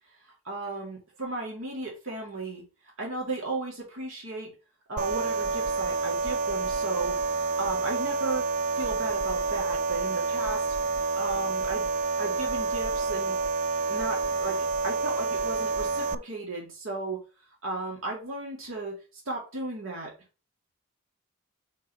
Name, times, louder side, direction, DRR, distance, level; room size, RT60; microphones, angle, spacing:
voice 1, 0.4-2.6 3.0-4.5 4.9-8.5 8.8-10.7 11.1-11.9 12.2-13.4 13.9-17.2 17.6-19.0 19.3-20.1, right 2 dB, 70° right, -2 dB, 2.4 m, -35 dB
sound 1, 5.0-16.1, right 4 dB, 35° right, 0.3 m, -28 dB
4.6 x 4.6 x 5.5 m, 0.32 s
head